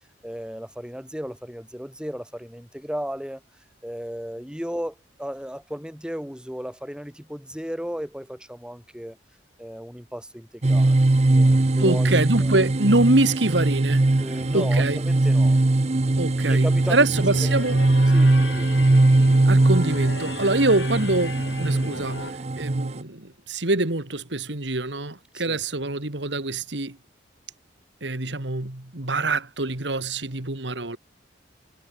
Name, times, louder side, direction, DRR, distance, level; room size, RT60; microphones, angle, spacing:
voice 1, 0.2-3.4 3.8-9.2 9.6-11.0 11.3-12.1 12.4-12.5 14.2-17.5 18.1-19.0 25.3-25.6, equal, 5° right, 7.6 m, -35 dB
sound 1, 10.6-23.0, right 2 dB, 35° right, 0.7 m, -20 dB
voice 2, 11.8-14.1 14.5-15.0 16.2-16.6 16.9-17.8 19.5-27.0 28.0-31.0, right 2 dB, 75° right, 2.5 m, -24 dB
sound 2, 17.1-22.3, left 3 dB, 80° left, 5.9 m, -37 dB
head